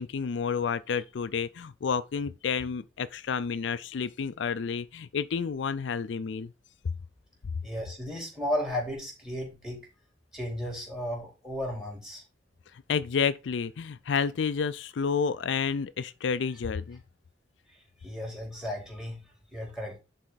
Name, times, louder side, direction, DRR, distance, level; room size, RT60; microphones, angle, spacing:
voice 1, 0.0-6.5 12.9-17.0, left 6 dB, 70° left, 0.4 m, -30 dB
voice 2, 7.6-9.8 10.3-12.2 18.0-19.2 19.5-19.9, equal, 5° right, 3.7 m, -34 dB
11.0 x 4.3 x 4.0 m
head